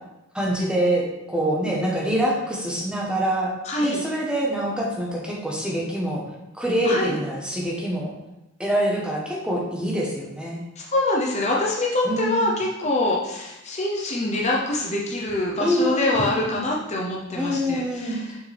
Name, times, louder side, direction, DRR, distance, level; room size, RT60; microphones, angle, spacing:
voice 1, 0.3-1.0 1.3-3.5 3.8-6.2 6.5-8.1 8.6-10.6 12.0-12.5 15.6-16.6 17.3-18.2, equal, 5° right, -3 dB, 1.2 m, -25 dB
voice 2, 3.6-4.0 6.8-7.2 10.8-18.3, left 2 dB, 30° left, -3 dB, 0.8 m, -25 dB
6.7 x 5.7 x 3.5 m, 0.94 s
head